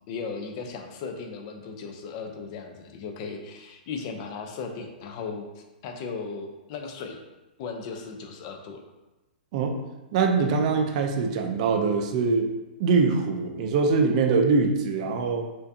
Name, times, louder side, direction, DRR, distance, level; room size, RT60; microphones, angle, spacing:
voice 1, 0.1-7.2 7.6-8.8, left 5 dB, 40° left, 3 dB, 0.5 m, -36 dB
voice 2, 10.1-12.5 12.8-15.5, right 4 dB, 45° right, 4 dB, 0.5 m, -23 dB
4.3 x 2.6 x 2.7 m, 1.1 s
hypercardioid pair, 145°, 5 cm